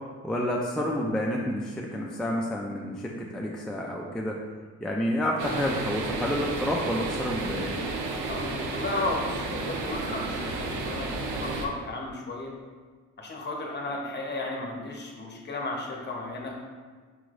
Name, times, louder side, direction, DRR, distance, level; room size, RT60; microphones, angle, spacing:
voice 1, 0.2-4.4 4.8-7.7, equal, ahead, -2 dB, 0.3 m, -29 dB
sound 1, 5.4-11.7, right 3 dB, 85° right, 0.6 m, -32 dB
voice 2, 8.3-12.5 13.2-16.5, left 2 dB, 35° left, 0 dB, 0.8 m, -34 dB
5.6 x 3.0 x 2.5 m, 1.5 s
cardioid pair, 90°, 30 cm